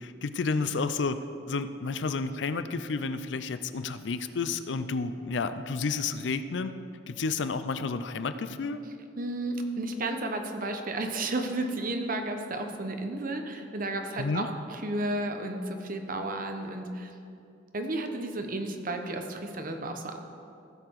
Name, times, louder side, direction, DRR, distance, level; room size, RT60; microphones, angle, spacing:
voice 1, 0.0-6.7 7.1-8.8 14.2-14.5, left 4 dB, 75° left, 11 dB, 0.5 m, -31 dB
voice 2, 9.2-17.1 17.7-20.2, right 2 dB, 50° right, 5 dB, 0.9 m, -32 dB
15.5 x 6.8 x 4.7 m, 2.6 s
head